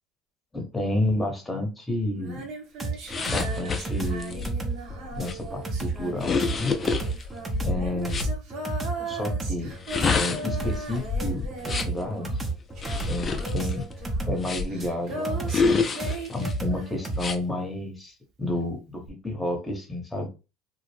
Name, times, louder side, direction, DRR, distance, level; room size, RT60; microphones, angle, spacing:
voice 1, 0.5-2.5 3.2-4.5 5.2-6.8 7.6-8.2 9.0-9.7 10.1-12.3 13.1-13.8 14.2-15.5 16.3-20.3, left 1 dB, 10° left, 0.9 m, -30 dB
Female singing, 2.2-17.5 19.1-19.2, right 2 dB, 60° right, 0.8 m, -38 dB
sound 1, 2.8-17.2, right 3 dB, 20° right, 0.6 m, -32 dB
sound 2, 3.1-8.3 9.7-12.0 12.8-14.9 15.5-16.5 17.1-17.4, left 4 dB, 30° left, 0.4 m, -29 dB
2.5 x 2.1 x 3.1 m
hypercardioid pair, 80°, 0 cm